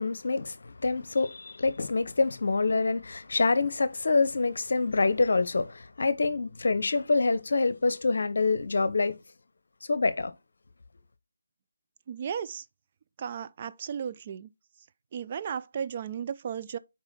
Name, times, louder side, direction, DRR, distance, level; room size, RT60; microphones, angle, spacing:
voice 1, 0.0-9.1 9.9-10.3, left 3 dB, 60° left, 0.8 m, -26 dB
voice 2, 12.1-12.6 13.2-14.5 15.1-16.8, right 7 dB, 30° right, 0.3 m, -35 dB
4.9 x 4.6 x 5.6 m
figure-of-eight pair, 155°, 0 cm